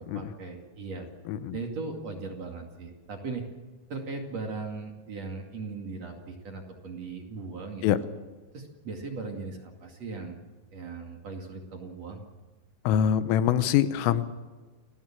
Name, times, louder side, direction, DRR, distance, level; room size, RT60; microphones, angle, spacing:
voice 1, 0.1-1.1 1.5-3.4 3.9-8.1 8.5-10.4 10.7-12.2, right 4 dB, 45° right, 2 dB, 2.6 m, -38 dB
voice 2, 12.9-14.3, left 10 dB, 85° left, 12 dB, 3.6 m, -24 dB
29.0 x 18.5 x 7.5 m, 1.3 s
omnidirectional pair, 5.7 m